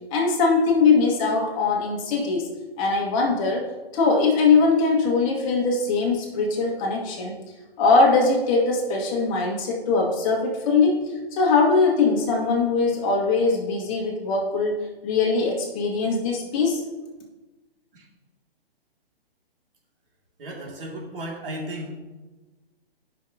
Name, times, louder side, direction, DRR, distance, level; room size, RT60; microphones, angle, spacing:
voice 1, 0.1-2.5 2.8-3.7 3.9-7.3 7.8-11.0 11.3-16.8, left 4 dB, 30° left, -1 dB, 1.8 m, -21 dB
voice 2, 20.4-21.9, right 1 dB, 60° right, -2 dB, 2.5 m, -34 dB
13.0 x 5.8 x 2.8 m, 1.2 s
hypercardioid pair, 135°, 31 cm